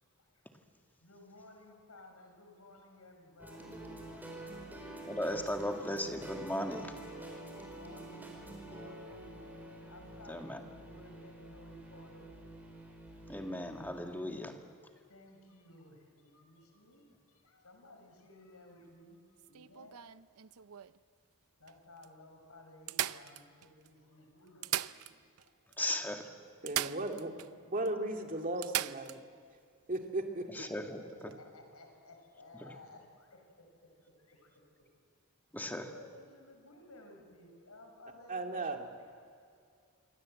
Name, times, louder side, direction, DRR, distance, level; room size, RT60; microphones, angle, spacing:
voice 1, 0.2-0.5 1.0-4.6 7.4-9.4 9.9-12.3 15.1-20.1 21.6-25.1 25.4-25.5 26.9-27.7 30.6-33.4 34.2-34.5 35.6-39.0, left 1 dB, 80° left, 4 dB, 5.8 m, -56 dB
sound 1, 3.4-14.0, right 2 dB, 10° right, 5.0 m, -48 dB
voice 2, 5.1-6.9 10.3-10.6 13.3-14.6 25.8-26.3 30.5-31.0 32.5-32.7 35.5-35.9, left 1 dB, 10° left, 3 dB, 2.0 m, -37 dB
sound 2, 19.4-21.0 21.7-21.8 22.0-22.1 22.9-23.9 24.5-25.5 25.7-25.8 26.7-27.5 27.8-27.9 28.6-29.2 31.2-31.3, right 12 dB, 80° right, 0.6 m, -38 dB
voice 3, 26.6-27.3 27.7-29.2 29.9-30.4 38.3-38.9, right 2 dB, 40° right, 3 dB, 2.5 m, -36 dB
27.5 x 24.5 x 7.8 m, 2.3 s
head